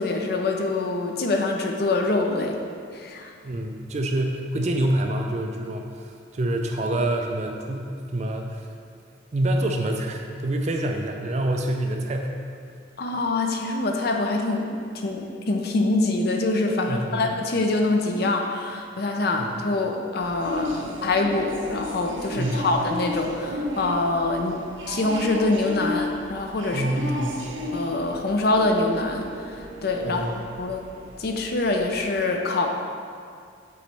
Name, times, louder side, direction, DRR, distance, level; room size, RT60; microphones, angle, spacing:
voice 1, 0.0-2.6 2.9-3.3 13.0-26.9 27.2-27.4 27.7-30.2 30.6-30.8 31.2-32.7, left 2 dB, 50° left, 2 dB, 0.5 m, -25 dB
voice 2, 3.4-8.7 9.3-12.4 16.9-17.3 19.4-19.5 22.4-22.8 26.7-27.4 30.0-30.4, right 1 dB, 35° right, 3 dB, 0.4 m, -27 dB
sound 1, 20.2-32.0, left 1 dB, 70° right, 0.6 m, -34 dB
6.9 x 3.1 x 4.6 m, 2.2 s
head